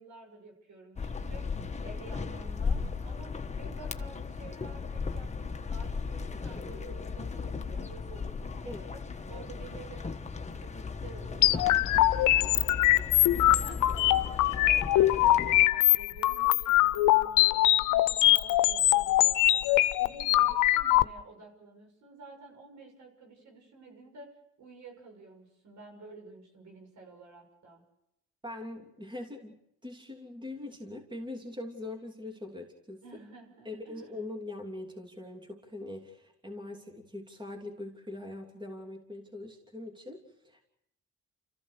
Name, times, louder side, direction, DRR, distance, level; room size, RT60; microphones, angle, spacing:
voice 1, 0.0-10.2 10.5-24.3 24.6-27.8 33.0-34.1, right 3 dB, 70° right, 2 dB, 6.9 m, -51 dB
sound 1, 1.0-15.7, left 5 dB, 25° left, 1.3 m, -36 dB
sound 2, 11.4-21.0, left 15 dB, 85° left, 0.8 m, -23 dB
voice 2, 28.4-33.0 33.6-40.6, left 2 dB, 15° right, 2 dB, 3.2 m, -42 dB
29.5 x 15.0 x 6.8 m, 0.81 s
cardioid pair, 90°, 30 cm